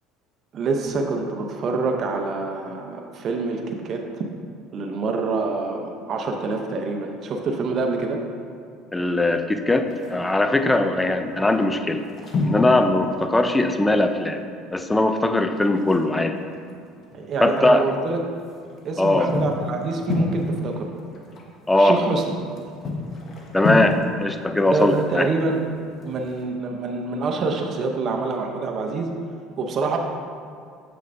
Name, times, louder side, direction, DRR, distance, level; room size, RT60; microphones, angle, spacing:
voice 1, 0.5-4.2 4.7-8.2 17.1-18.2 18.8-20.9 21.8-22.3 24.7-25.6 26.0-29.1 29.6-30.0, right 3 dB, 45° right, 2 dB, 0.6 m, -26 dB
voice 2, 8.9-12.0 12.4-14.4 14.7-16.4 17.4-17.8 19.0-19.3 21.7-22.0 23.5-25.3, left 2 dB, 10° left, 7 dB, 0.4 m, -20 dB
sound 1, 9.9-10.5 11.1-11.4 11.6-14.3 14.6-14.7 15.0-15.1 15.6-17.7 18.1-26.4, left 2 dB, 40° left, 1.0 m, -30 dB
6.9 x 6.3 x 2.6 m, 2.2 s
cardioid pair, 120°, 0 cm